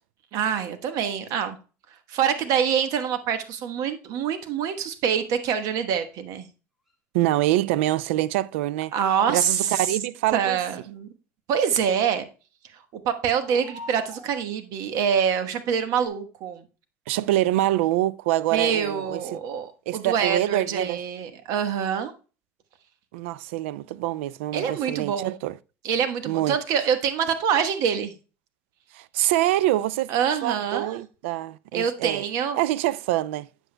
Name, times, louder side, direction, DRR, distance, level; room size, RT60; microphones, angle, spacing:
voice 1, 0.3-1.6 2.1-6.5 8.9-9.9 10.3-11.1 11.5-12.3 13.0-16.6 18.5-22.1 24.5-25.3 25.8-28.1 30.1-31.0 31.7-32.6, right 8 dB, 65° right, 1.2 m, -25 dB
sound 1, 3.5-3.6 6.9-7.0 9.0-9.1 11.7-12.0 13.3-14.4 15.4-15.5 15.9-16.1, left 1 dB, 5° right, 2.8 m, -44 dB
voice 2, 7.1-8.9 9.3-10.6 17.1-19.4 19.9-21.0 23.1-25.6 26.3-26.6 28.9-30.1 30.4-32.2 32.5-33.5, right 15 dB, 90° right, 0.3 m, -25 dB
9.0 x 7.8 x 2.2 m
supercardioid pair, 95°, 6 cm